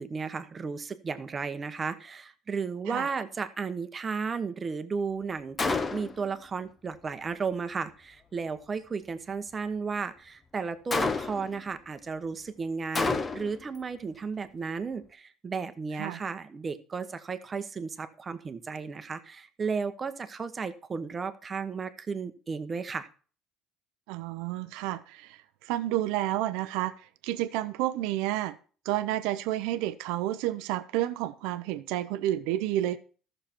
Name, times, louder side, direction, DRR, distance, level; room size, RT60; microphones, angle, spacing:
voice 1, 0.0-23.1, right 5 dB, 25° right, 10 dB, 1.0 m, -34 dB
Gunshot gunfire, 5.6-6.3 10.9-11.6 13.0-13.6, left 4 dB, 20° left, 0.9 m, -29 dB
voice 2, 24.1-28.6 28.8-33.0, right 14 dB, 80° right, 12 dB, 0.7 m, -30 dB
14.0 x 6.6 x 4.4 m, 0.39 s
cardioid pair, 135°, 0 cm